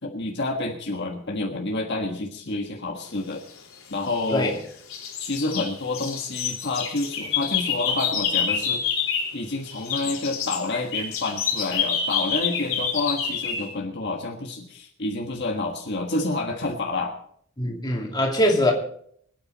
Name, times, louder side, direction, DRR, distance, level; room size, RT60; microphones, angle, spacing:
voice 1, 0.0-3.4 3.9-4.5 5.2-8.8 9.3-17.1, left 2 dB, 50° left, 1 dB, 1.6 m, -29 dB
sound 1, 3.8-4.6 4.9-9.4 9.7-13.7, left 7 dB, 70° left, 4.1 m, -27 dB
voice 2, 17.6-18.7, left 1 dB, 20° left, -1 dB, 2.7 m, -22 dB
25.0 x 9.3 x 4.1 m, 0.63 s
head